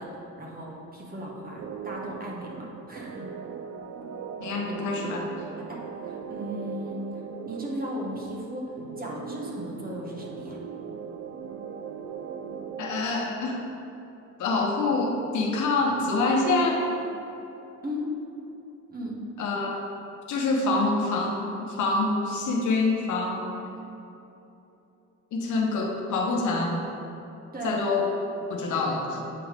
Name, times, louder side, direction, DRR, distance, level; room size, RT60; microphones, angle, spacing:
voice 1, 0.0-3.3 5.7-7.0 7.4-10.6 17.8-18.1 18.9-19.2 27.5-27.8, equal, 30° right, -3 dB, 1.3 m, -36 dB
sound 1, 1.6-13.0, right 7 dB, 60° right, 0.5 m, -39 dB
voice 2, 4.4-5.2 12.8-13.6 14.4-16.8 19.4-19.9 20.3-23.5 25.3-26.8 27.6-28.1 28.5-29.2, left 3 dB, 75° left, -1 dB, 1.0 m, -26 dB
8.6 x 3.1 x 5.0 m, 2.9 s
cardioid pair, 90°, 30 cm